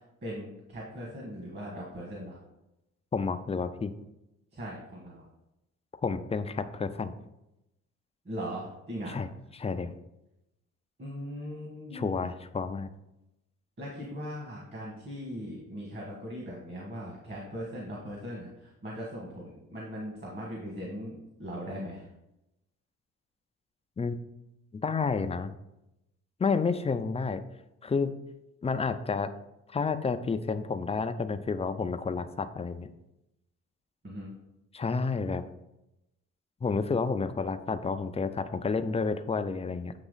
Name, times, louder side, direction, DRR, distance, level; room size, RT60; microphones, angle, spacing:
voice 1, 0.2-2.4 4.5-5.2 8.2-9.1 11.0-12.2 13.8-22.1 34.0-34.3, equal, 35° right, -3 dB, 1.8 m, -39 dB
voice 2, 3.1-3.9 6.0-7.1 9.1-9.3 9.5-10.0 11.9-12.9 24.0-24.2 24.7-25.5 26.4-27.4 27.8-28.1 28.6-29.3 29.7-32.9 34.7-35.4 36.6-39.9, left 4 dB, 20° left, 9 dB, 0.4 m, -30 dB
8.3 x 3.0 x 3.9 m, 0.89 s
cardioid pair, 90°, 30 cm